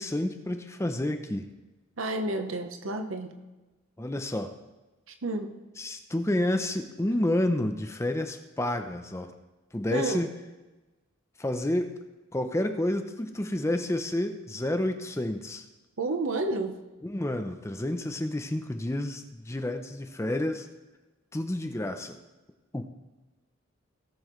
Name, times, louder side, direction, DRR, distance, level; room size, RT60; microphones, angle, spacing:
voice 1, 0.0-1.5 4.0-4.5 5.8-9.3 9.7-10.3 11.4-12.0 12.3-15.7 17.0-20.7 21.3-22.2 22.7-22.9, left 1 dB, 15° left, 7 dB, 0.5 m, -30 dB
voice 2, 2.0-3.4 5.2-5.5 9.9-10.3 16.0-16.8, right 2 dB, 75° right, 7 dB, 0.9 m, -30 dB
18.0 x 6.9 x 3.1 m, 1.1 s
head